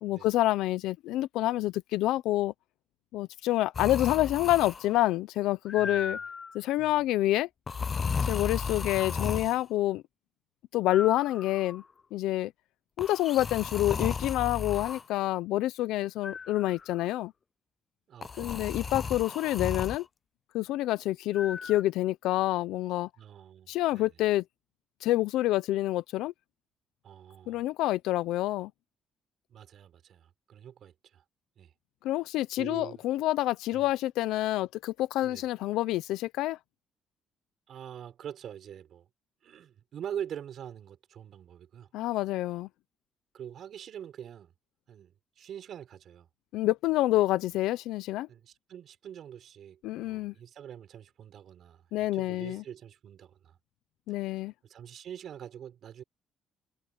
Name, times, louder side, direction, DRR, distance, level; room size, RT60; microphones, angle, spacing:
voice 1, 0.0-2.5 3.1-6.2 6.5-7.5 8.3-10.0 10.7-11.8 12.1-12.5 13.0-17.3 18.4-20.1 20.5-23.1 23.7-24.4 25.0-26.3 27.5-28.7 32.0-36.6 41.9-42.7 46.5-48.3 49.8-50.3 51.9-52.6 54.1-54.5, left 15 dB, 90° left, 0.6 m, -27 dB
sound 1, 3.7-5.0 5.7-6.6 7.7-9.6 10.9-11.8 13.0-15.0 16.2-17.0 18.2-20.0 21.3-21.8, left 5 dB, 30° left, 0.3 m, -34 dB
voice 2, 5.8-6.3 6.8-7.1 18.1-18.7 23.2-24.1 27.0-27.6 29.5-31.2 31.6-31.7 32.5-33.0 33.7-33.9 35.2-35.5 37.7-39.1 39.4-41.9 43.3-44.5 44.9-46.3 48.3-53.6 54.6-56.0, right 9 dB, 55° right, 6.6 m, -44 dB
cardioid pair, 135°, 0 cm